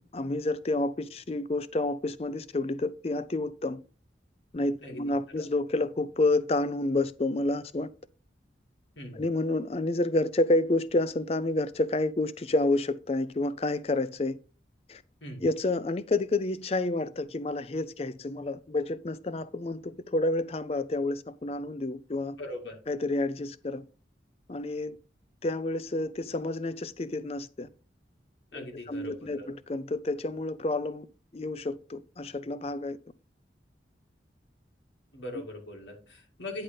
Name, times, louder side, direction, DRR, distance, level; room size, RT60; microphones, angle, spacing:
voice 1, 0.1-3.8 4.5-7.9 9.1-14.4 14.9-15.0 15.4-22.4 22.9-23.8 24.5-25.0 25.4-27.7 28.5-31.1 31.3-33.0, left 2 dB, 35° left, 0.4 m, -29 dB
voice 2, 4.8-5.5 9.0-9.2 15.2-15.5 22.4-22.8 28.5-29.5 35.1-36.6, left 1 dB, 85° left, 2.3 m, -41 dB
9.7 x 3.9 x 5.2 m
head